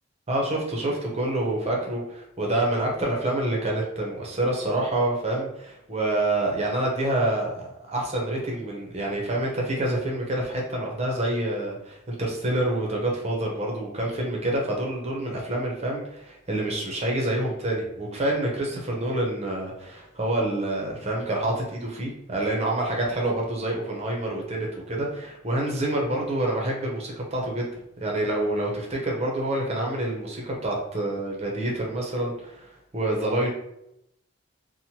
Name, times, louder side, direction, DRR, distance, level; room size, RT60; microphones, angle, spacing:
voice 1, 0.3-27.7 28.0-33.5, right 1 dB, 30° right, -1 dB, 0.6 m, -27 dB
2.9 x 2.0 x 2.8 m, 0.81 s
head